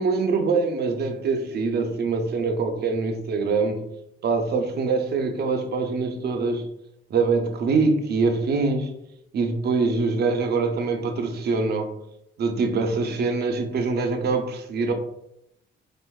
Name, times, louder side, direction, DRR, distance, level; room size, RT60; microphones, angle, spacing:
voice 1, 0.0-3.8 4.2-6.7 7.1-8.9 9.3-11.9 12.4-14.9, right 4 dB, 55° right, 5 dB, 0.6 m, -24 dB
4.4 x 2.5 x 2.3 m, 0.80 s
cardioid pair, 90°, 20 cm